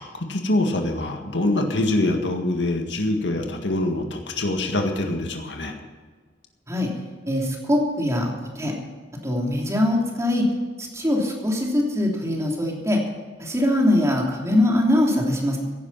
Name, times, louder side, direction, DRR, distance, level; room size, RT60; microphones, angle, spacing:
voice 1, 0.0-5.7, left 2 dB, 80° left, 3 dB, 1.9 m, -24 dB
voice 2, 7.3-8.7 9.2-10.4 10.8-13.0 13.4-15.6, left 1 dB, 15° right, -1 dB, 3.1 m, -22 dB
16.5 x 10.5 x 5.7 m, 1.5 s
head